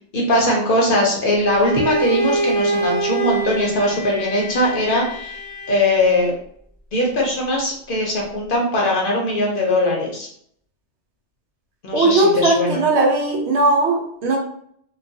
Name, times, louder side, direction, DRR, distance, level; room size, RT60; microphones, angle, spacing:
voice 1, 0.1-5.4 5.7-6.3 6.9-10.3 11.8-12.8, left 1 dB, 55° left, -1 dB, 0.7 m, -20 dB
Bowed string instrument, 1.5-6.3, right 2 dB, 45° right, 0.7 m, -25 dB
voice 2, 11.9-14.4, right 2 dB, 75° right, 1 dB, 0.9 m, -18 dB
2.2 x 2.2 x 2.6 m, 0.66 s
omnidirectional pair, 1.2 m